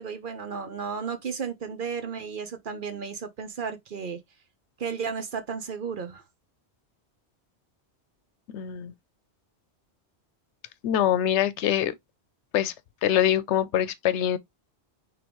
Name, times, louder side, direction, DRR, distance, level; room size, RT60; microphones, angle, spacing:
voice 1, 0.0-4.2 4.8-6.2, right 6 dB, 50° right, 0.9 m, -33 dB
voice 2, 8.5-8.9 10.8-11.9 12.5-12.7 13.0-14.4, left 10 dB, 90° left, 0.9 m, -24 dB
5.2 x 3.5 x 3.0 m
omnidirectional pair, 1.1 m